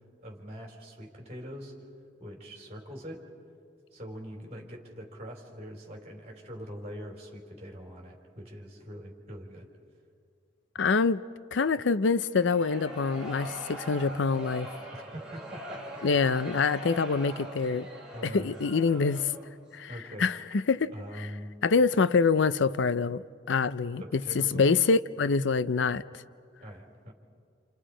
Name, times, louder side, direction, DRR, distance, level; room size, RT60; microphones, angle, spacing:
voice 1, 0.2-1.8 2.2-3.2 3.9-9.7 14.9-16.3 18.1-18.5 19.9-20.3 20.9-21.5 23.9-24.8 26.6-27.1, equal, 35° right, 4.4 m, -43 dB
voice 2, 10.8-11.2 11.5-14.7 16.0-17.9 18.2-19.3 19.7-19.9 20.2-20.9 21.2-21.3 21.6-26.0, left 4 dB, 75° left, 0.5 m, -25 dB
sound 1, 12.3-19.5, equal, 5° right, 5.3 m, -42 dB
29.0 x 29.0 x 5.0 m
head